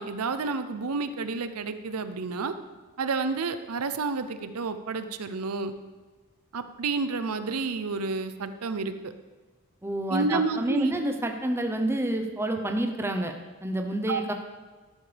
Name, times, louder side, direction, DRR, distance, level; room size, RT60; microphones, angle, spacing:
voice 1, 0.0-2.5 3.0-5.7 6.5-9.1 10.1-11.0 14.1-14.2, right 4 dB, 80° right, 10 dB, 0.6 m, -30 dB
voice 2, 9.8-13.3 13.6-14.3, right 1 dB, 10° right, 4 dB, 0.7 m, -28 dB
12.0 x 11.5 x 3.4 m, 1.3 s
head